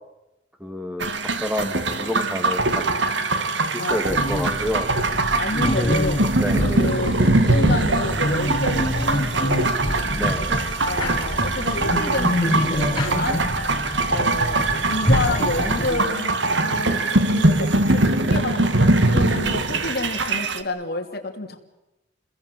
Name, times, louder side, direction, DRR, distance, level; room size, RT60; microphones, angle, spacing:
voice 1, 0.6-2.8 3.7-4.9 5.7-5.9 6.4-6.6 10.2-10.4, equal, 5° right, 7 dB, 2.2 m, -28 dB
sound 1, 1.0-20.6, right 2 dB, 75° right, 1.8 m, -22 dB
voice 2, 3.8-4.3 5.4-6.2 6.5-9.7 10.4-10.6 10.8-13.4 14.1-21.6, left 2 dB, 55° left, 4 dB, 3.0 m, -29 dB
sound 2, 4.1-16.0, equal, 25° left, 6.5 m, -26 dB
29.5 x 21.5 x 7.7 m, 0.97 s
head